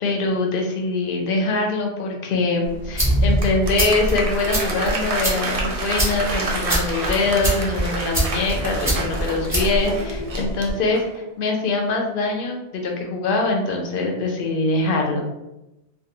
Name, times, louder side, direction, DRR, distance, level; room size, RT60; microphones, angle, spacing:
voice 1, 0.0-15.3, left 3 dB, 65° left, 1 dB, 0.7 m, -23 dB
sound 1, 2.6-10.7, equal, 5° right, 0.9 m, -25 dB
Applause, 3.1-11.2, right 2 dB, 50° right, 0.4 m, -29 dB
2.3 x 2.2 x 2.8 m, 0.95 s
omnidirectional pair, 1.1 m